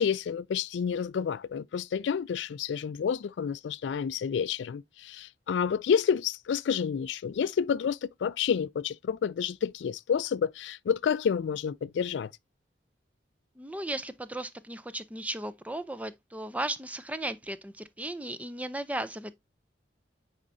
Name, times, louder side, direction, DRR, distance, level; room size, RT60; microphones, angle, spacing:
voice 1, 0.0-12.3, left 7 dB, 75° left, 0.3 m, -29 dB
voice 2, 13.6-19.3, right 1 dB, 10° right, 0.5 m, -36 dB
9.7 x 4.3 x 2.6 m
head